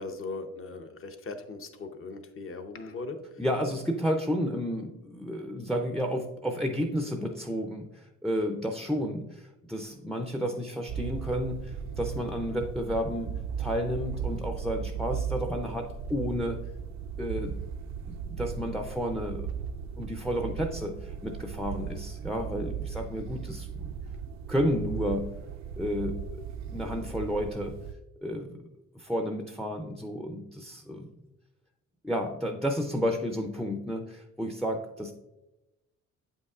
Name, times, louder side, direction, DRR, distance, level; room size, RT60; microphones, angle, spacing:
voice 1, 0.0-3.2, left 3 dB, 45° left, 7 dB, 0.8 m, -39 dB
voice 2, 3.4-16.7 17.2-17.6 18.1-19.5 20.0-23.9 24.5-25.3 25.8-27.8 28.2-28.7 28.9-31.1 32.0-35.1, equal, ahead, 5 dB, 0.5 m, -31 dB
sound 1, 10.9-27.9, right 7 dB, 65° right, 0.4 m, -37 dB
7.7 x 5.4 x 2.4 m, 0.99 s
cardioid pair, 90°, 30 cm